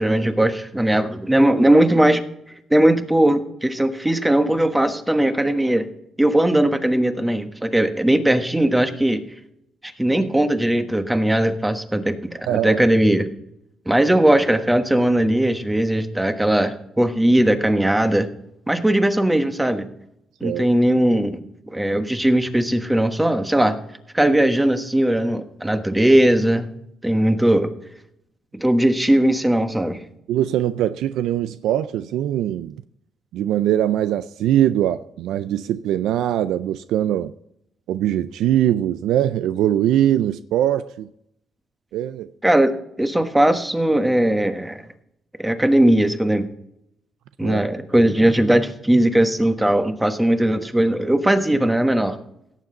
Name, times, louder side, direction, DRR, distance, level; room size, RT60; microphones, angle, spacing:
voice 1, 0.0-2.2 2.7-5.9 6.2-9.2 9.8-13.3 13.9-18.3 18.7-19.9 20.4-21.4 21.7-23.8 24.1-26.7 27.0-27.7 28.6-30.0 42.4-44.8 45.4-46.5 47.4-52.2, right 1 dB, 10° right, 1.2 m, -19 dB
voice 2, 12.5-12.8 20.4-20.7 30.3-32.8 33.3-37.3 37.9-41.1 41.9-42.3 47.4-47.6, right 11 dB, 85° right, 0.3 m, -21 dB
17.0 x 7.2 x 3.9 m
cardioid pair, 90°, 0 cm